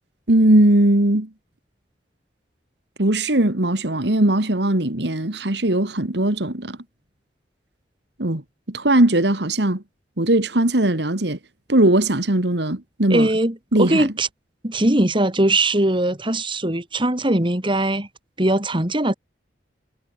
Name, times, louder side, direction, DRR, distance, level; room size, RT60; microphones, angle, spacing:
voice 1, 0.3-1.3 3.0-6.8 8.2-8.4 8.7-9.8 10.2-11.4 11.7-13.3 13.7-14.1, right 1 dB, 70° right, 2.3 m, -19 dB
voice 2, 13.1-14.3 14.6-18.1 18.4-19.1, right 1 dB, 30° right, 3.0 m, -20 dB
head